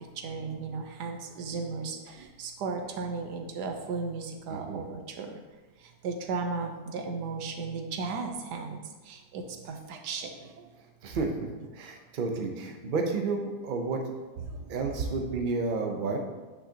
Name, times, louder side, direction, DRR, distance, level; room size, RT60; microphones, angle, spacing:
voice 1, 0.2-5.4 6.0-8.8 9.1-10.7 14.5-14.7, right 4 dB, 85° right, 4 dB, 1.4 m, -35 dB
voice 2, 4.5-4.9 11.0-11.5 11.7-14.0 14.7-16.2, right 4 dB, 45° right, 3 dB, 0.7 m, -31 dB
8.6 x 5.5 x 2.9 m, 1.2 s
omnidirectional pair, 1.7 m